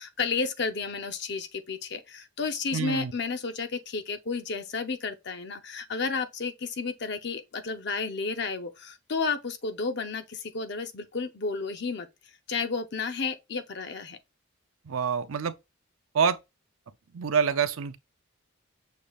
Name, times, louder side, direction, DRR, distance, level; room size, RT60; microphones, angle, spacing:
voice 1, 0.0-12.1 12.5-14.2, left 4 dB, 50° left, 0.6 m, -32 dB
voice 2, 2.7-3.1 14.8-15.6 16.1-16.4 17.1-18.0, right 6 dB, 80° right, 0.5 m, -26 dB
6.4 x 3.3 x 2.3 m
head